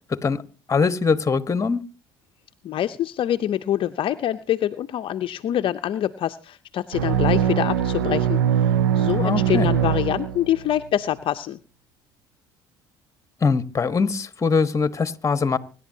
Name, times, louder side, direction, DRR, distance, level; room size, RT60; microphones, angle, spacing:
voice 1, 0.1-0.4 0.7-1.8 9.2-9.7 13.4-15.6, left 5 dB, 30° left, 13 dB, 1.3 m, -22 dB
voice 2, 2.6-11.6, left 11 dB, 55° left, 9 dB, 0.6 m, -25 dB
sound 1, 6.9-10.8, right 9 dB, 90° right, 0.6 m, -22 dB
25.5 x 11.0 x 2.8 m, 0.36 s
hypercardioid pair, 60°, 11 cm